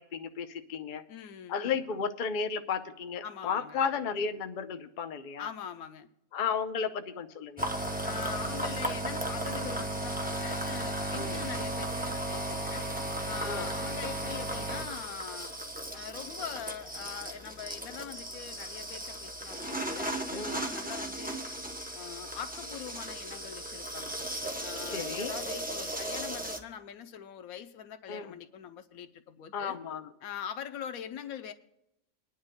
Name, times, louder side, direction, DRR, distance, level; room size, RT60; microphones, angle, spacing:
voice 1, 0.0-1.0 1.5-5.5 6.3-7.7 11.1-11.4 13.4-13.7 20.3-20.6 24.9-25.3 28.1-28.3 29.5-30.1, left 6 dB, 45° left, 0.7 m, -34 dB
voice 2, 1.1-1.6 3.2-3.8 5.4-6.1 8.0-12.9 13.2-15.5 15.9-21.5 21.9-24.2 24.6-29.8 30.2-31.5, left 8 dB, 90° left, 1.1 m, -43 dB
sound 1, 7.6-26.6, right 1 dB, 10° right, 0.4 m, -35 dB
23.5 x 10.5 x 2.2 m
omnidirectional pair, 1.5 m